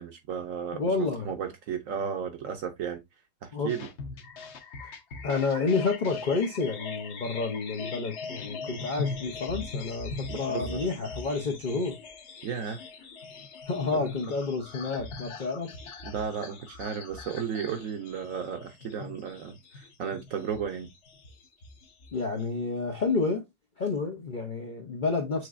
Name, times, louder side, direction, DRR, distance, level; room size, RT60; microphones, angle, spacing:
voice 1, 0.0-3.0 3.4-3.9 10.3-10.9 12.4-12.8 13.9-14.0 16.0-20.9, right 7 dB, 65° right, 0.8 m, -34 dB
voice 2, 0.7-1.3 3.5-3.7 4.8-4.9 5.2-12.0 13.7-15.7 22.1-23.4 23.8-25.5, left 4 dB, 90° left, 0.4 m, -29 dB
sound 1, 3.7-22.4, left 4 dB, 55° left, 0.8 m, -41 dB
6.3 x 3.1 x 2.4 m
omnidirectional pair, 1.9 m